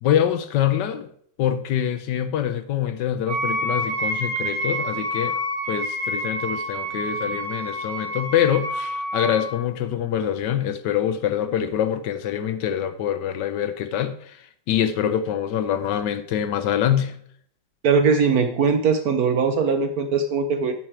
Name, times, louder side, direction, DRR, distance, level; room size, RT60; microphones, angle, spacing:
voice 1, 0.0-1.1 1.4-5.4 5.7-17.2, left 10 dB, 75° left, 1.2 m, -25 dB
Wind instrument woodwind instrument, 3.3-9.6, equal, 90° right, 2.2 m, -28 dB
voice 2, 17.8-20.7, right 5 dB, 65° right, 1.0 m, -20 dB
8.8 x 6.2 x 4.4 m
omnidirectional pair, 2.1 m